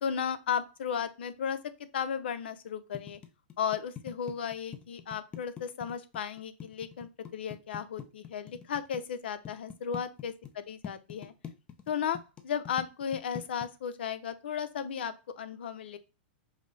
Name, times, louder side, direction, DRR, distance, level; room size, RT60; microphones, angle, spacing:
voice 1, 0.0-3.2 3.6-11.3 11.9-12.2 12.4-16.0, left 8 dB, 90° left, 12 dB, 0.6 m, -35 dB
sound 1, 2.9-9.0 9.4-10.5 10.8-13.7, left 9 dB, 20° left, 0.5 m, -43 dB
5.1 x 2.0 x 3.9 m, 0.30 s
supercardioid pair, 155°, 6 cm